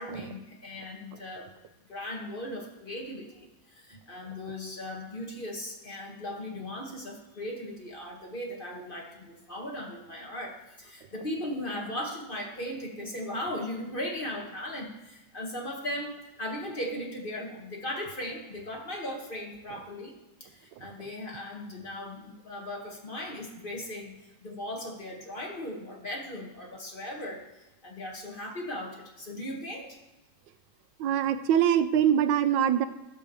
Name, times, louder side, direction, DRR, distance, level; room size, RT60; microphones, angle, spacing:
voice 1, 0.0-1.5 1.9-20.1 20.4-24.1 24.4-30.0, left 1 dB, 30° left, 0 dB, 1.5 m, -38 dB
voice 2, 31.0-32.9, right 9 dB, 80° right, 12 dB, 1.3 m, -24 dB
13.0 x 5.0 x 6.8 m, 1.0 s
omnidirectional pair, 1.9 m